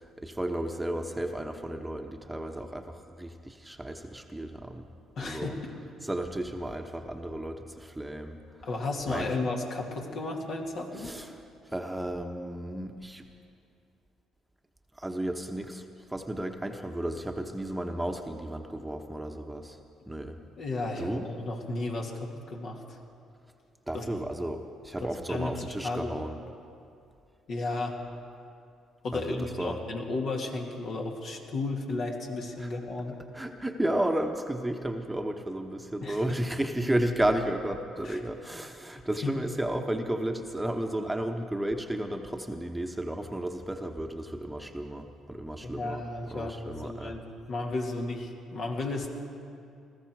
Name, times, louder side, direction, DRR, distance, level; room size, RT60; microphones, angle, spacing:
voice 1, 0.0-4.9 5.2-5.6 6.0-8.4 9.1-9.3 11.0-13.3 14.9-15.8 16.1-19.8 20.1-20.4 21.0-21.3 23.9-26.4 29.1-29.8 32.6-32.7 33.1-47.1, right 1 dB, 10° right, 4 dB, 1.1 m, -33 dB
voice 2, 5.2-5.8 8.6-11.1 20.6-23.0 23.9-24.0 25.0-26.2 27.5-28.0 29.0-33.1 36.0-36.4 38.0-38.2 45.6-47.2 47.5-49.1, left 2 dB, 60° left, 0 dB, 2.3 m, -34 dB
20.5 x 14.0 x 4.7 m, 2.5 s
hypercardioid pair, 60°, 0 cm